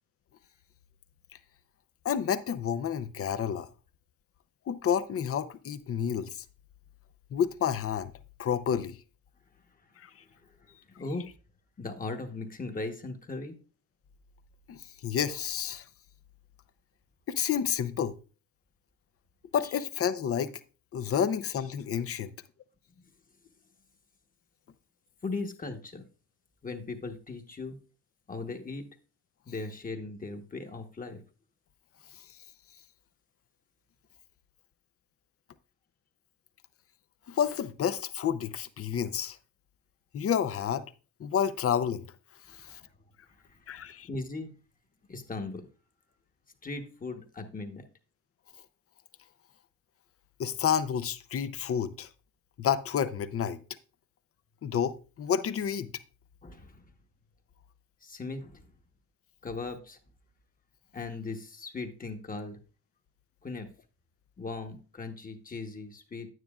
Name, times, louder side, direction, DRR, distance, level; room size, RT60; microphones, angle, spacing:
voice 1, 2.0-3.7 4.7-6.4 7.3-8.1 8.4-9.0 10.0-10.1 14.7-15.8 17.3-18.2 19.5-20.5 20.9-22.3 37.3-39.4 40.1-40.9 41.2-42.1 42.6-42.8 43.7-44.1 50.4-52.1 52.6-53.6 54.6-55.9, left 8 dB, 50° left, 0.7 m, -30 dB
voice 2, 10.2-11.3 11.8-13.6 19.6-19.7 23.0-23.1 25.2-26.0 26.6-27.8 28.3-28.8 29.5-31.2 42.6-42.7 43.5-44.5 45.1-45.7 46.6-47.8 56.4-56.9 58.0-58.7 59.4-60.0 60.9-62.6 63.4-63.7 64.4-66.3, left 3 dB, 30° left, 1.2 m, -38 dB
9.4 x 9.3 x 2.4 m
cardioid pair, 90°, 30 cm